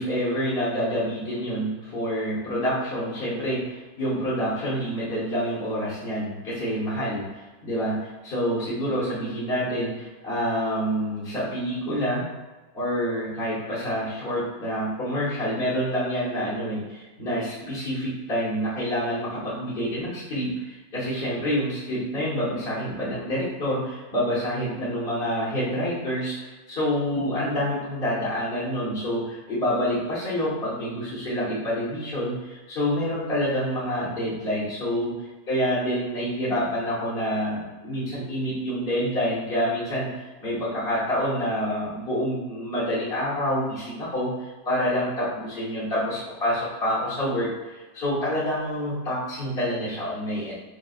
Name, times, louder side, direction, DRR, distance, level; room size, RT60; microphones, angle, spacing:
voice 1, 0.0-12.3 12.7-40.1 40.4-50.5, equal, 40° left, -11 dB, 1.0 m, -27 dB
5.0 x 2.2 x 2.4 m, 1.2 s
omnidirectional pair, 2.0 m